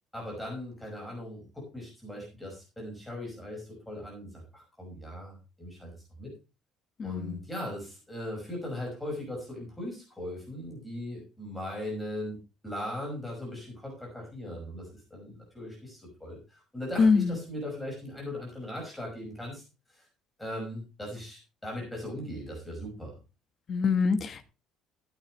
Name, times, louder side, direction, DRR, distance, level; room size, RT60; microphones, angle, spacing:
voice 1, 0.1-5.9 6.2-6.3 7.0-19.6 19.9-20.1 20.4-23.2, left 1 dB, 5° left, -2 dB, 5.5 m, -39 dB
voice 2, 7.0-7.4 17.0-17.4 23.7-24.4, left 5 dB, 30° left, 9 dB, 1.3 m, -24 dB
15.5 x 9.0 x 3.2 m, 0.30 s
cardioid pair, 175°, 0 cm